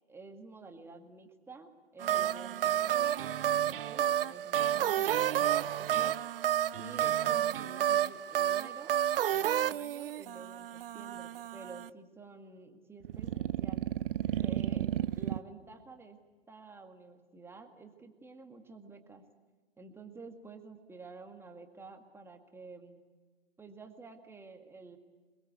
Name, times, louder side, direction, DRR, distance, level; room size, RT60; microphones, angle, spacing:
voice 1, 0.1-6.2 6.8-9.0 9.3-13.8 14.4-14.9 15.2-16.2 16.5-19.2 19.8-23.0 23.6-25.0, right 4 dB, 5° right, 4 dB, 1.9 m, -50 dB
sound 1, 2.0-11.9 13.0-15.4, right 11 dB, 60° right, 0.7 m, -31 dB
27.5 x 21.0 x 8.1 m, 1.4 s
hypercardioid pair, 130°, 33 cm